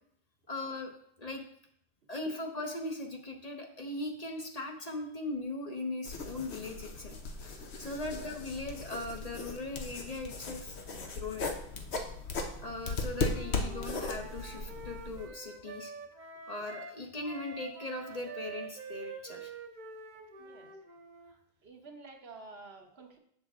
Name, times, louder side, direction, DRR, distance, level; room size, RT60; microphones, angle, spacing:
voice 1, 0.5-0.9 1.2-1.4 2.1-7.1 7.8-10.7 11.0-11.6 12.6-15.9 16.5-19.5, left 2 dB, 40° left, 2 dB, 0.8 m, -39 dB
sound 1, 6.0-15.3, left 3 dB, 85° left, 1.1 m, -37 dB
Wind instrument woodwind instrument, 13.2-17.0 17.2-21.3, right 3 dB, 50° right, 0.8 m, -46 dB
voice 2, 20.4-20.8 21.3-23.2, right 3 dB, 70° right, 3 dB, 1.2 m, -51 dB
7.4 x 6.6 x 3.6 m, 0.70 s
omnidirectional pair, 1.1 m